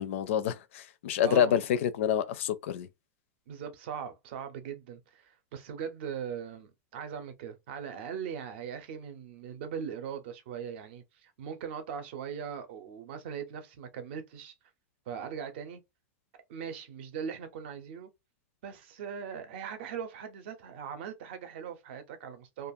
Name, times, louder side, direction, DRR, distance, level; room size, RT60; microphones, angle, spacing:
voice 1, 0.0-2.9, left 9 dB, 55° left, 0.4 m, -28 dB
voice 2, 1.2-1.5 3.5-14.5 15.1-15.8 16.5-18.1 18.6-22.7, right 7 dB, 45° right, 0.6 m, -40 dB
2.4 x 2.3 x 2.6 m
supercardioid pair, 175°, 8 cm